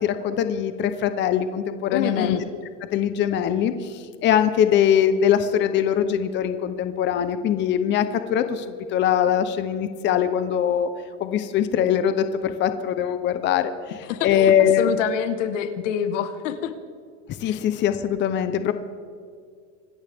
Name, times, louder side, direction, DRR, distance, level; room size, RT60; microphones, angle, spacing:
voice 1, 0.0-2.4 2.9-10.9 11.2-13.7 14.2-14.9 17.4-18.7, left 9 dB, 30° left, 10 dB, 0.8 m, -22 dB
voice 2, 1.9-2.4 14.0-16.7 17.4-17.6, left 9 dB, 85° left, 10 dB, 1.5 m, -26 dB
25.5 x 13.0 x 3.6 m, 2.1 s
supercardioid pair, 150°, 36 cm